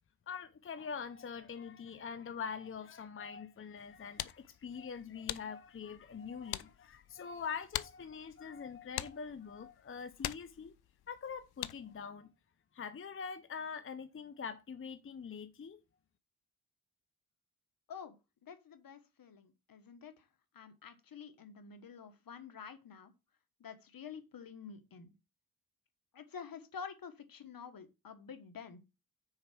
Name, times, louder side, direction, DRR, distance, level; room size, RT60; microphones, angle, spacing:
voice 1, 0.3-10.7 11.1-12.3 12.7-15.8, left 6 dB, 35° left, 0.6 m, -44 dB
sound 1, 3.8-12.0, left 13 dB, 85° left, 0.5 m, -45 dB
voice 2, 18.4-20.3 20.5-23.1 23.6-25.1 26.1-28.8, left 6 dB, 65° left, 1.4 m, -49 dB
6.4 x 4.6 x 5.9 m
cardioid pair, 90°, 37 cm